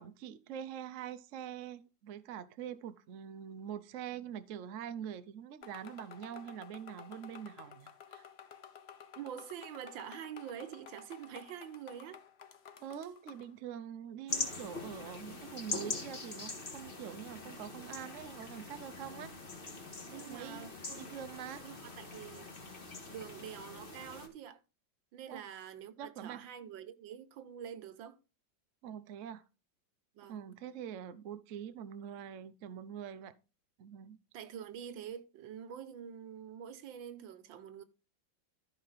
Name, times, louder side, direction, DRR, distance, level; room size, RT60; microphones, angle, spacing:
voice 1, 0.0-8.3 12.8-19.3 19.7-19.8 20.1-20.7 20.9-21.7 25.3-25.4 26.0-26.4 28.8-29.4 30.3-33.3 33.8-34.2, right 9 dB, 60° right, 0.8 m, -44 dB
sound 1, 5.6-13.5, left 8 dB, 50° left, 0.8 m, -53 dB
voice 2, 9.2-12.2 20.1-21.1 21.6-22.5 23.1-24.6 25.1-28.2 30.1-30.4 33.1-33.2 34.3-37.8, right 9 dB, 80° right, 1.6 m, -46 dB
sound 2, 14.3-24.3, left 3 dB, 30° left, 1.7 m, -43 dB
13.0 x 5.6 x 4.0 m
omnidirectional pair, 2.1 m